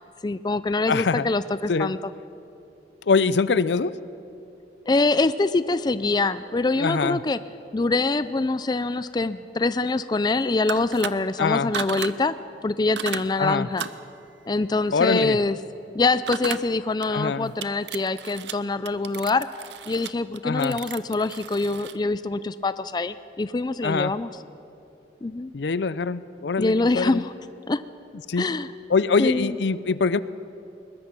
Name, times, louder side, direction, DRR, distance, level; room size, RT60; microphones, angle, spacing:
voice 1, 0.0-2.0 4.9-7.4 7.7-12.3 12.6-13.9 14.5-15.6 15.9-19.5 19.9-24.3 25.2-25.5 26.6-27.3 27.7-27.8 28.4-28.7 29.2-29.5, left 3 dB, 25° left, 14 dB, 0.4 m, -24 dB
voice 2, 0.9-1.3 1.7-1.9 3.0-4.0 6.8-7.2 11.4-11.7 13.4-13.7 14.9-15.4 17.1-17.5 20.4-20.8 23.8-24.1 25.5-27.2 28.3-28.5 28.9-30.2, left 4 dB, 75° left, 17 dB, 0.5 m, -23 dB
sound 1, 10.6-11.1 11.7-12.1 13.0-13.2 13.8-14.0 16.3-16.6 17.0-17.1 17.6-18.5 18.9-22.0, right 8 dB, 80° right, 0.7 m, -34 dB
21.5 x 20.5 x 6.1 m, 2.8 s
head